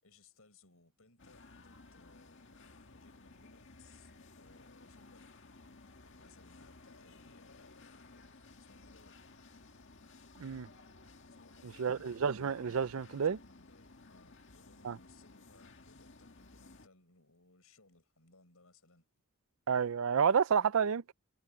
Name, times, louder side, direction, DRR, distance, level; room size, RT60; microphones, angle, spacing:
voice 1, 0.0-5.4 6.0-8.3 8.7-9.1 11.4-12.0 12.9-19.0, left 3 dB, 70° left, 7.0 m, -64 dB
sound 1, 1.2-16.9, left 3 dB, 55° left, 1.9 m, -57 dB
voice 2, 11.8-13.4 14.8-15.0 19.7-21.1, right 6 dB, 65° right, 0.5 m, -30 dB
head